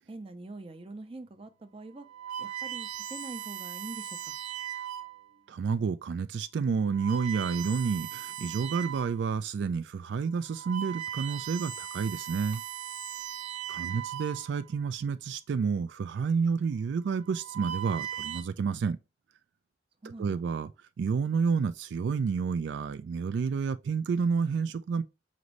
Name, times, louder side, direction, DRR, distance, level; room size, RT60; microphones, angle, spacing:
voice 1, 0.1-2.1 2.4-4.4 13.7-14.0 20.0-20.4, right 2 dB, 30° right, 0.5 m, -44 dB
sound 1, 1.1-1.3 1.9-5.3 6.0-6.2 6.8-9.2 9.7-9.8 10.3-14.8 15.8-16.2 17.1-18.4, right 10 dB, 65° right, 0.9 m, -39 dB
voice 2, 5.5-12.6 13.7-19.0 20.2-20.7 21.0-25.0, right 5 dB, 85° right, 0.3 m, -30 dB
5.1 x 2.6 x 3.1 m
head